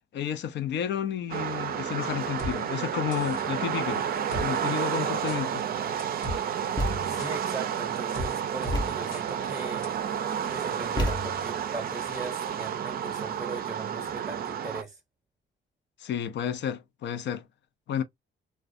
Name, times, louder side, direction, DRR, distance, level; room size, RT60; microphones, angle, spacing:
voice 1, 0.1-4.0 4.4-5.7 16.0-17.4 17.9-18.0, left 9 dB, 65° left, 0.5 m, -31 dB
sound 1, 1.3-14.8, right 8 dB, 50° right, 0.4 m, -31 dB
sound 2, 2.4-2.5 3.1-3.5 4.3-4.5 5.3-5.4 6.0-6.4 7.2-7.3 8.1-8.3 8.6-8.8 9.1-9.2 9.8-9.9, left 1 dB, 80° left, 1.0 m, -35 dB
Thump thud, 6.8-7.3 8.7-9.2 11.0-11.6, equal, 20° left, 0.7 m, -30 dB
voice 2, 7.1-10.0 10.5-15.0, right 3 dB, 10° right, 0.7 m, -39 dB
2.4 x 2.2 x 2.5 m
cardioid pair, 90°, 20 cm